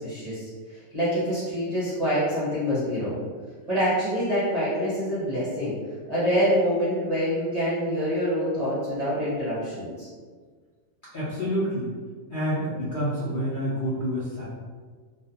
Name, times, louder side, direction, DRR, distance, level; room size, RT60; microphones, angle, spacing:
voice 1, 0.0-3.2 3.7-5.8 6.1-10.1, equal, 40° right, -10 dB, 0.6 m, -26 dB
voice 2, 11.1-11.9 12.3-14.4, equal, 55° left, -9 dB, 0.6 m, -28 dB
2.3 x 2.2 x 2.7 m, 1.5 s
omnidirectional pair, 1.4 m